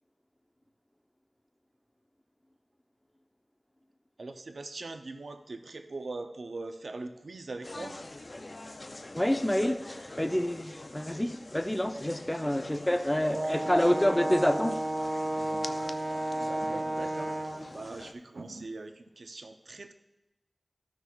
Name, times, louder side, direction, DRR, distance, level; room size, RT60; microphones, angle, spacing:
voice 1, 4.2-8.0 12.1-12.4 13.4-14.3 15.4-15.7 16.4-17.3 17.7-19.9, right 3 dB, 85° right, 0.5 m, -42 dB
sound 1, 7.6-18.1, left 2 dB, 50° left, 0.6 m, -45 dB
voice 2, 9.1-14.9, left 1 dB, 15° left, 0.7 m, -28 dB
Brass instrument, 13.3-17.7, right 1 dB, 30° right, 0.8 m, -32 dB
14.5 x 6.0 x 2.4 m
wide cardioid pair, 50°, 0 cm